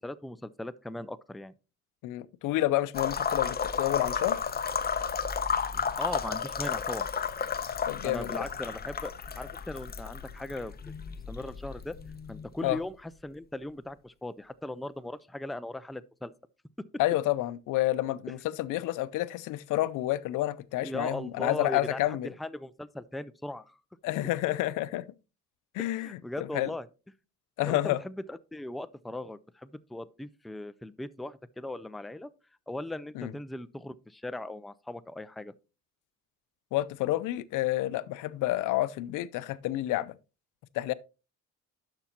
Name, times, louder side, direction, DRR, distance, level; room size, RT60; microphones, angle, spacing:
voice 1, 0.0-1.5 6.0-7.1 8.0-10.7 11.3-12.0 12.3-16.3 20.8-23.8 25.8-26.9 27.7-32.3 32.7-35.5, left 1 dB, ahead, 0.4 m, -38 dB
voice 2, 2.0-4.4 7.9-8.4 12.6-12.8 17.0-22.3 24.0-25.0 25.7-26.1 26.4-26.7 27.6-28.0 33.2-33.3 36.7-40.1 40.7-40.9, left 16 dB, 90° left, 0.5 m, -29 dB
sound 1, 2.9-12.7, left 6 dB, 30° left, 0.7 m, -33 dB
11.5 x 6.0 x 2.9 m
cardioid pair, 90°, 30 cm